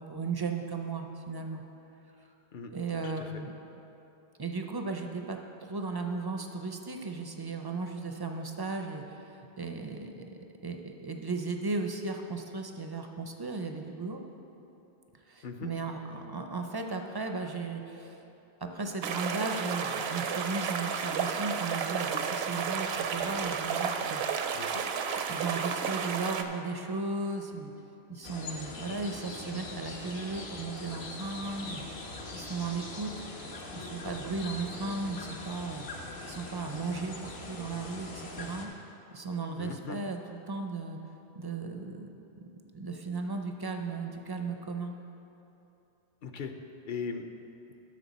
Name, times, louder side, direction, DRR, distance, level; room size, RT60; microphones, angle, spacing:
voice 1, 0.0-1.6 2.7-3.5 4.4-14.2 15.3-18.3 18.6-24.4 25.3-27.7 28.1-31.8 32.3-33.1 33.7-35.9 36.3-38.7 39.1-41.0 41.3-44.9, right 3 dB, 35° right, 4 dB, 0.3 m, -36 dB
voice 2, 2.5-3.3 15.4-15.7 24.5-24.9 39.6-40.0 46.2-46.5 46.9-47.2, left 5 dB, 55° left, 6 dB, 0.7 m, -39 dB
sound 1, 19.0-26.4, right 6 dB, 75° right, 0.8 m, -32 dB
sound 2, 28.2-38.7, left 2 dB, 75° left, 1.2 m, -42 dB
11.5 x 6.5 x 4.1 m, 2.9 s
omnidirectional pair, 1.1 m